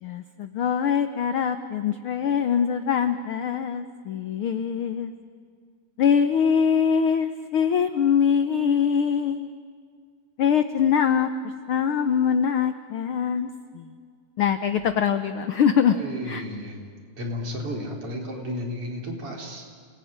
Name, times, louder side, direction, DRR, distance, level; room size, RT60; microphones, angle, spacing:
voice 1, 0.0-5.1 6.0-9.5 10.4-11.3 11.7-13.9 14.4-16.4, left 7 dB, 70° left, 9 dB, 1.3 m, -23 dB
voice 2, 15.9-16.8 17.2-19.7, left 1 dB, 50° right, 1 dB, 4.6 m, -33 dB
29.0 x 19.5 x 9.6 m, 2.1 s
omnidirectional pair, 3.4 m